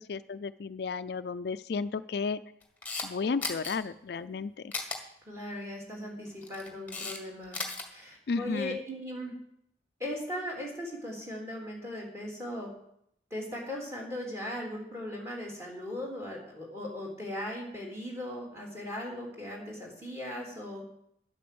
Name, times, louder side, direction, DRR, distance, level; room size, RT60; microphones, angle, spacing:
voice 1, 0.0-2.4 3.0-4.7 8.3-8.8, left 4 dB, 60° left, 12 dB, 0.4 m, -33 dB
Camera, 2.6-3.1 3.4-3.7 4.7-5.0 6.3-7.2 7.4-7.8, left 3 dB, 10° left, 1.7 m, -35 dB
voice 2, 5.2-7.6 7.9-9.3 10.0-12.7 13.3-20.8, left 1 dB, 15° right, -1 dB, 3.3 m, -38 dB
10.5 x 8.5 x 7.8 m, 0.74 s
head